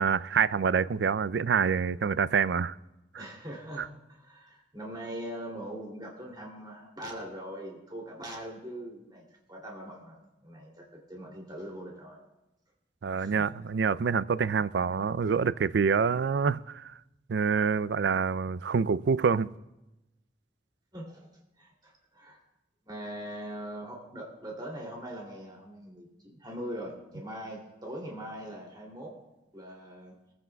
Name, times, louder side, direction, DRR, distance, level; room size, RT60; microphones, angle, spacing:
voice 1, 0.0-2.7 3.1-3.2 3.8-3.9 13.0-16.9 17.3-19.5, right 6 dB, 70° right, 16 dB, 0.4 m, -26 dB
voice 2, 3.1-9.2 9.5-12.2 13.2-13.5 20.9-21.3 21.6-22.4 22.8-29.2 29.5-30.1, right 1 dB, 25° right, -1 dB, 2.8 m, -41 dB
23.0 x 15.0 x 2.3 m, 0.96 s
head